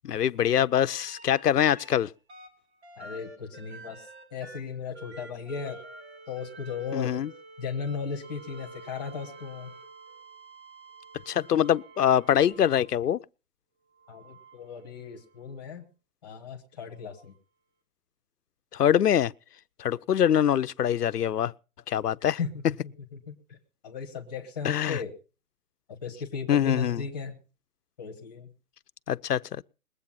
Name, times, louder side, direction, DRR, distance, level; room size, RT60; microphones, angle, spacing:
voice 1, 0.0-2.1 6.9-7.3 11.3-13.2 18.7-19.3 19.8-21.5 21.9-22.4 24.6-25.0 26.5-27.0 29.1-29.6, left 10 dB, 80° left, 0.7 m, -24 dB
sound 1, 0.9-2.0 2.3-13.1 13.9-15.5 17.2-17.3, right 2 dB, 45° right, 2.8 m, -49 dB
voice 2, 3.0-4.0 4.3-5.8 6.3-7.2 7.6-9.7 14.1-15.8 16.2-17.3 22.4-23.6 23.8-25.1 25.9-27.4 28.0-28.5, left 5 dB, 5° left, 1.2 m, -36 dB
21.0 x 8.3 x 5.7 m
hypercardioid pair, 175°, 46 cm